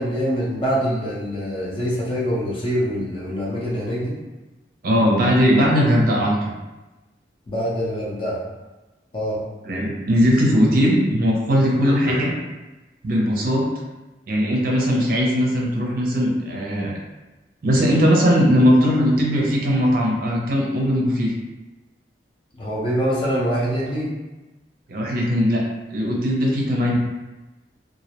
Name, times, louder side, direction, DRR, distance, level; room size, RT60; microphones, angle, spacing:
voice 1, 0.0-4.2 7.5-8.4 9.1-9.4 11.8-12.3 22.6-24.1, equal, 30° left, -6 dB, 0.6 m, -24 dB
voice 2, 4.8-6.5 9.6-12.3 13.0-13.6 14.3-16.9 17.6-21.3 24.9-27.0, equal, 55° right, -2 dB, 0.5 m, -19 dB
2.4 x 2.0 x 2.8 m, 1.1 s
head